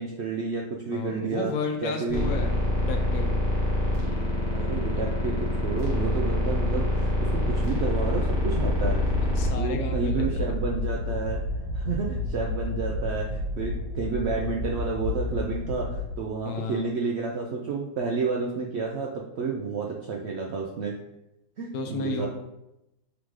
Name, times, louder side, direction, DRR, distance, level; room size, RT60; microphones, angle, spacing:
voice 1, 0.0-1.5 1.8-2.3 2.6-2.8 4.1-9.2 9.5-11.4 11.7-20.9 21.6-22.3, right 4 dB, 85° right, -1 dB, 0.5 m, -31 dB
voice 2, 0.9-3.4 9.3-10.5 16.5-16.8 21.7-22.3, left 4 dB, 70° left, 4 dB, 1.0 m, -32 dB
sound 1, 2.1-9.5, left 1 dB, 15° left, 1.0 m, -26 dB
sound 2, 8.6-16.1, left 2 dB, 50° left, 1.6 m, -30 dB
3.7 x 3.6 x 3.1 m, 0.88 s
omnidirectional pair, 1.7 m